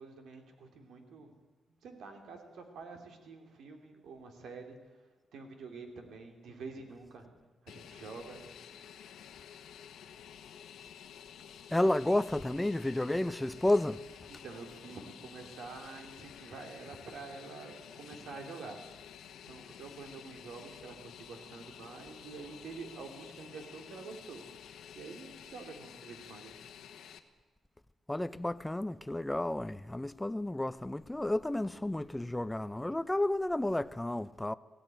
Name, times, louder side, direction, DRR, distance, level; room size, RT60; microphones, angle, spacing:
voice 1, 0.0-1.3 1.8-5.0 5.3-7.3 7.6-8.5 14.3-19.2 19.5-26.5, right 4 dB, 80° right, 3.1 m, -47 dB
Fixed-wing aircraft airplane, 7.7-27.2, left 9 dB, 90° left, 1.4 m, -51 dB
voice 2, 11.7-14.0 28.1-34.5, left 1 dB, 10° left, 0.6 m, -31 dB
17.0 x 16.5 x 9.2 m
cardioid pair, 110°, 0 cm